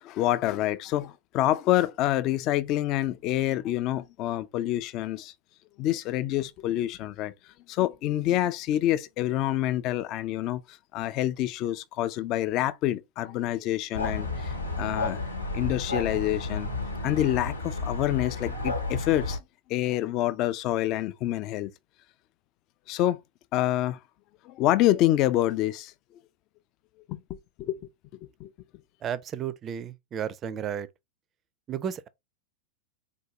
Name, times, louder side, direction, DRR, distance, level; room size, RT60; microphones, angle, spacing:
voice 1, 0.0-5.3 5.8-7.3 7.7-15.2 15.5-16.7 17.0-19.4 19.7-21.7 22.9-23.2 23.5-24.0 24.4-25.9 27.1-27.8 28.2-28.5, left 14 dB, 40° left, 0.3 m, -27 dB
sound 1, 13.9-19.4, left 3 dB, 85° left, 0.9 m, -32 dB
voice 2, 29.0-30.9 31.7-32.1, right 8 dB, 30° right, 0.4 m, -33 dB
3.9 x 2.6 x 3.2 m
figure-of-eight pair, 90°, 0 cm